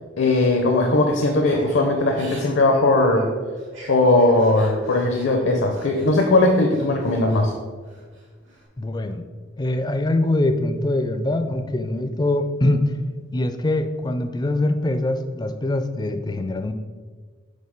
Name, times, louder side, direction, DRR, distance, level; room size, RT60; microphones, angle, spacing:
voice 1, 0.2-3.3 3.9-7.5, left 2 dB, 65° left, 1 dB, 0.6 m, -19 dB
Crying sobbing / Breathing, 1.5-6.1 6.5-7.5 7.9-8.6, equal, 80° right, 1.6 m, -39 dB
voice 2, 8.8-9.2 9.6-13.0 13.3-16.7, left 1 dB, 20° left, 8 dB, 0.3 m, -23 dB
5.3 x 3.7 x 5.1 m, 1.5 s
head